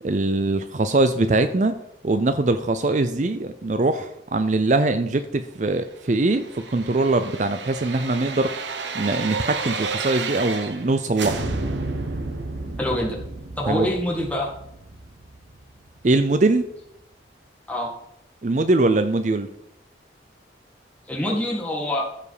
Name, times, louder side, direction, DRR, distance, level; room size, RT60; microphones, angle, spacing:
voice 1, 0.0-1.8 2.0-8.5 8.9-11.4 13.7-13.9 16.0-16.7 18.4-19.5, right 2 dB, 40° right, 10 dB, 0.5 m, -22 dB
sound 1, 6.1-10.9 11.2-16.0 16.4-16.5, right 3 dB, 85° right, 1.1 m, -31 dB
voice 2, 12.8-13.2 13.6-14.5 17.7-17.9 21.1-22.1, left 1 dB, 10° left, -1 dB, 1.9 m, -25 dB
14.5 x 5.1 x 5.0 m, 0.82 s
head